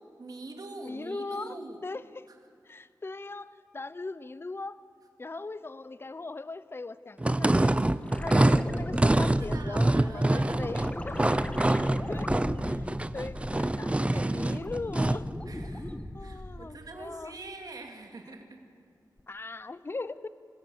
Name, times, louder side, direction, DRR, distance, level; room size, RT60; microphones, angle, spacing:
voice 1, 0.2-1.8 9.5-10.8 13.6-13.7 14.1-14.7 15.5-15.9 16.2-18.6, right 2 dB, 60° right, 3 dB, 2.6 m, -44 dB
voice 2, 0.8-1.5 1.8-2.0 2.6-4.8 5.2-7.8 8.2-11.3 11.7-12.9 13.1-15.3 16.1-17.3 19.3-20.3, left 3 dB, 30° left, 16 dB, 0.7 m, -39 dB
sound 1, 7.2-15.3, right 1 dB, 15° right, 0.5 m, -25 dB
sound 2, 8.1-13.9 14.2-16.8 19.2-19.3, left 1 dB, 15° left, 1.4 m, -37 dB
26.5 x 16.5 x 7.1 m, 2.3 s
wide cardioid pair, 85°, 7 cm